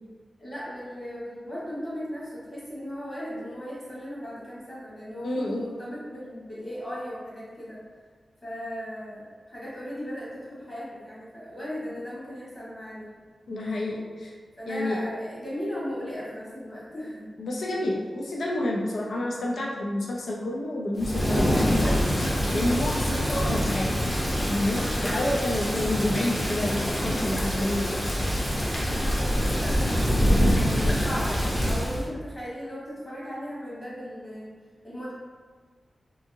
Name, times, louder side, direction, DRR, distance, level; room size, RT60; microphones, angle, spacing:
voice 1, 0.4-7.8 8.4-13.1 14.6-17.3 22.8-23.0 24.7-25.4 28.7-34.5 34.8-35.1, equal, 30° left, -9 dB, 1.2 m, -37 dB
voice 2, 5.2-5.6 13.5-14.3 14.7-15.0 17.4-22.0 22.5-24.0 24.5-28.1, left 1 dB, 75° left, -2 dB, 0.4 m, -29 dB
Thunder / Rain, 21.0-32.1, equal, 15° left, 0.6 m, -25 dB
2.6 x 2.6 x 2.6 m, 1.6 s
wide cardioid pair, 95°, 0 cm